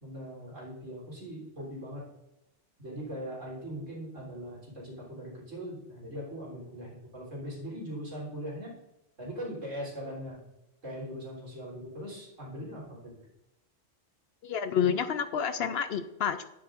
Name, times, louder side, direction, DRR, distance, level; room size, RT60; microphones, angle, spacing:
voice 1, 0.0-2.1 2.8-8.7 9.2-10.4 10.8-13.1, equal, 85° right, -5 dB, 3.8 m, -40 dB
voice 2, 14.4-16.4, left 8 dB, 65° left, 11 dB, 0.7 m, -29 dB
10.0 x 9.8 x 2.5 m, 0.88 s
omnidirectional pair, 1.3 m